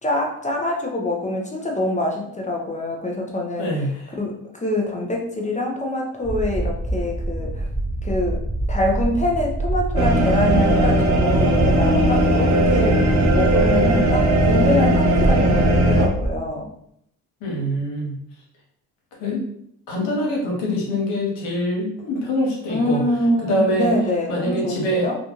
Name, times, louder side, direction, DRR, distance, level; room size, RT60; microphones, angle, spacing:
voice 1, 0.0-3.7 4.2-7.7 8.0-8.4 8.7-16.7 22.7-25.2, left 1 dB, 15° left, 0 dB, 0.7 m, -25 dB
voice 2, 3.6-4.1 17.4-18.2 19.2-19.4 19.9-23.0 23.4-23.9 24.3-25.1, equal, 75° left, -2 dB, 1.1 m, -24 dB
sound 1, 6.2-16.4, right 1 dB, 10° right, 0.3 m, -25 dB
sound 2, 10.0-16.1, right 1 dB, 40° right, 0.6 m, -18 dB
2.5 x 2.3 x 2.9 m, 0.71 s
hypercardioid pair, 50°, 42 cm